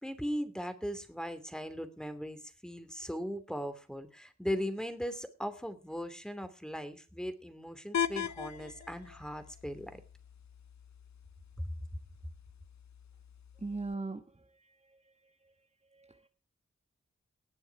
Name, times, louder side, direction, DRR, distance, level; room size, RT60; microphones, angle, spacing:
voice 1, 0.0-10.0 11.6-11.7, equal, ahead, 10 dB, 2.8 m, -38 dB
sound 1, 7.9-13.9, left 8 dB, 70° left, 0.6 m, -41 dB
voice 2, 13.6-15.6 15.9-16.3, right 3 dB, 25° right, 6 dB, 1.2 m, -42 dB
18.5 x 7.1 x 4.8 m, 0.36 s
cardioid pair, 40°, 29 cm